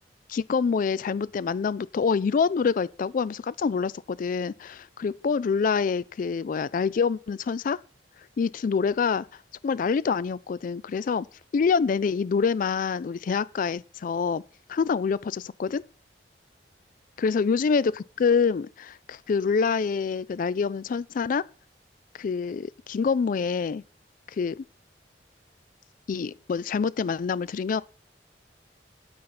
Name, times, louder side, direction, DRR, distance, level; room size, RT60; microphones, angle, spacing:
voice 1, 0.3-7.8 8.4-9.3 9.6-11.3 11.5-14.4 14.7-15.8 17.2-21.4 22.2-23.8 24.4-24.6 26.1-27.8, left 5 dB, 50° left, 0.3 m, -26 dB
12.0 x 4.0 x 5.9 m
head